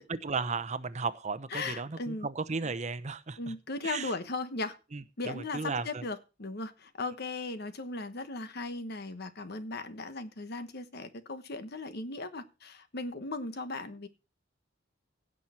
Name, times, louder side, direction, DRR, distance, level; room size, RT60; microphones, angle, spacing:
voice 1, 0.1-3.6 3.8-4.1 4.9-6.0, right 4 dB, 40° right, 13 dB, 0.8 m, -35 dB
voice 2, 1.5-2.3 3.4-4.8 5.2-14.1, left 3 dB, 60° left, 10 dB, 1.2 m, -37 dB
16.5 x 6.4 x 4.3 m, 0.31 s
head